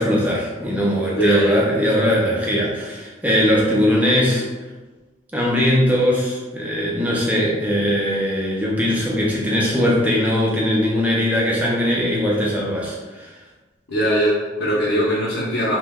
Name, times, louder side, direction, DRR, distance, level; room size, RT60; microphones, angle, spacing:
voice 1, 0.0-4.4 5.3-13.3, equal, 10° right, -4 dB, 0.5 m, -20 dB
voice 2, 1.1-1.6 13.9-15.8, equal, 70° left, -8 dB, 0.8 m, -20 dB
3.0 x 2.1 x 3.5 m, 1.3 s
head